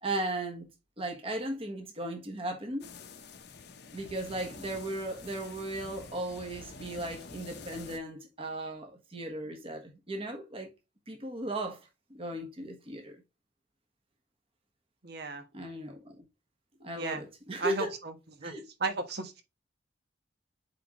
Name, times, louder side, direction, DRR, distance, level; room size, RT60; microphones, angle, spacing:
voice 1, 0.0-0.7 1.0-2.9 3.9-10.7 11.1-13.2 15.5-16.2 16.8-17.9 18.4-18.6, right 1 dB, 30° right, 1.3 m, -36 dB
sound 1, 2.8-8.0, left 4 dB, 60° left, 0.9 m, -47 dB
voice 2, 15.0-15.4 17.0-17.2 17.6-18.5 18.8-19.4, right 3 dB, 60° right, 1.3 m, -35 dB
8.2 x 3.8 x 3.0 m
head